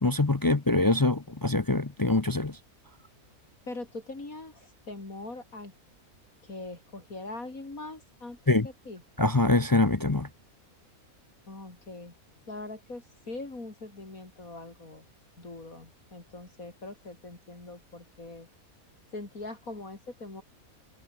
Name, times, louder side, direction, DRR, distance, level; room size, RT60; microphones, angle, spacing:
voice 1, 0.0-2.6 8.5-8.7 9.2-10.3, left 2 dB, 30° left, 0.4 m, -24 dB
voice 2, 3.7-5.7 6.4-9.0 11.5-12.1 12.5-15.0 15.4-18.5 19.1-20.4, left 2 dB, 65° left, 5.0 m, -42 dB
omnidirectional pair, 1.6 m